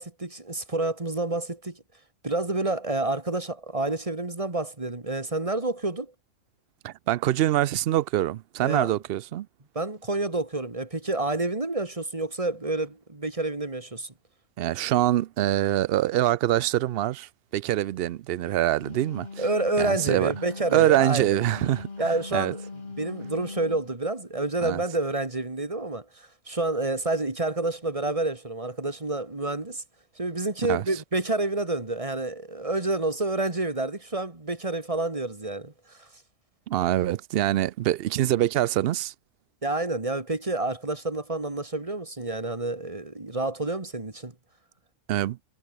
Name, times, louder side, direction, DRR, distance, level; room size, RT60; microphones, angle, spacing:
voice 1, 0.0-1.8 2.2-6.1 8.6-8.9 9.8-14.1 19.4-21.4 22.0-22.6 23.0-29.8 30.2-36.1 39.6-44.3, right 2 dB, 25° right, 2.2 m, -29 dB
voice 2, 6.8-9.5 14.6-19.4 19.8-20.3 20.7-22.5 24.6-24.8 30.7-30.8 36.7-39.1 45.1-45.4, right 13 dB, 65° right, 0.6 m, -24 dB
Wind instrument woodwind instrument, 18.6-23.9, left 3 dB, 40° left, 2.1 m, -40 dB
omnidirectional pair, 1.4 m